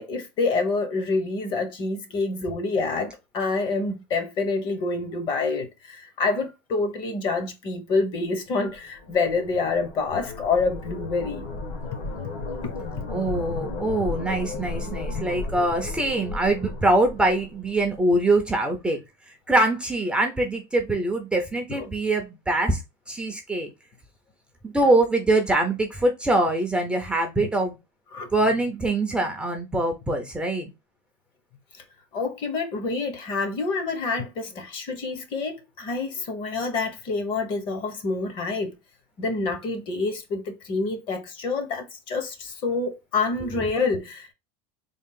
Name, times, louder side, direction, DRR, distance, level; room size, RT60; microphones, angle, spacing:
voice 1, 0.0-11.4 21.7-21.9 27.4-27.5 28.1-28.3 32.1-38.7 39.2-44.3, left 3 dB, 40° left, 1.1 m, -27 dB
sound 1, 8.7-18.0, left 3 dB, 55° left, 1.3 m, -34 dB
voice 2, 13.1-19.0 19.5-22.8 23.1-23.7 24.6-27.8 28.3-30.7, right 2 dB, 5° right, 0.6 m, -23 dB
3.6 x 2.4 x 3.7 m
supercardioid pair, 150°, 13 cm